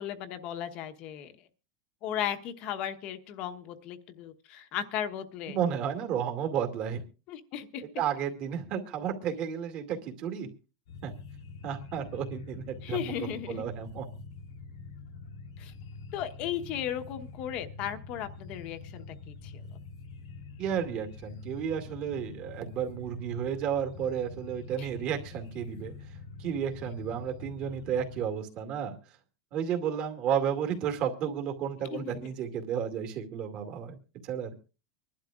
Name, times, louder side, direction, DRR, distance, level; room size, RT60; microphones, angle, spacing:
voice 1, 0.0-1.3 2.0-5.6 7.3-7.8 12.8-13.6 15.6-15.7 16.1-19.6 24.8-24.9 31.9-32.1, left 10 dB, 35° left, 9 dB, 1.1 m, -36 dB
voice 2, 5.5-7.0 8.0-10.5 11.0-11.1 11.6-14.1 20.6-25.9 26.4-29.0 29.5-34.0 34.2-34.6, right 8 dB, 35° right, 5 dB, 2.3 m, -32 dB
sound 1, 10.9-28.3, left 4 dB, 80° left, 1.6 m, -45 dB
25.0 x 11.5 x 2.4 m, 0.33 s
supercardioid pair, 170°, 3 cm